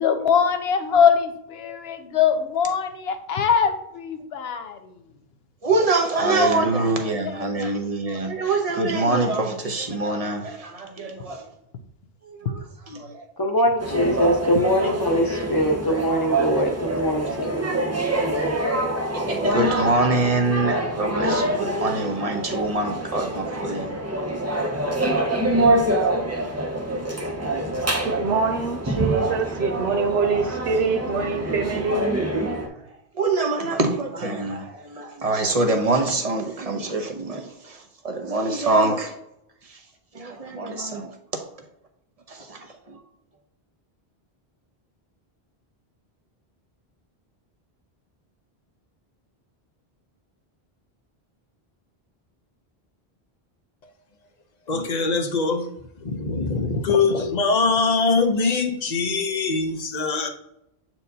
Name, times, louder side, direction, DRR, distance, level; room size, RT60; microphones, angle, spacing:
voice 1, 0.0-4.8 6.3-6.5 7.2-8.2, left 7 dB, 75° left, 1.0 m, -22 dB
voice 2, 5.6-11.4 12.3-13.2 16.6-17.0 19.1-23.9 33.2-37.8 38.0-39.1 40.1-41.1 42.3-42.6 42.9-43.0, right 2 dB, 40° right, 0.9 m, -24 dB
voice 3, 13.4-18.6, equal, 20° left, 1.0 m, -23 dB
sound 1, 13.8-32.7, right 1 dB, 20° right, 0.5 m, -25 dB
voice 4, 28.0-32.2, right 5 dB, 85° right, 0.9 m, -25 dB
voice 5, 54.7-55.7 56.0-60.3, left 4 dB, 45° left, 0.8 m, -22 dB
7.7 x 4.5 x 2.7 m
omnidirectional pair, 1.0 m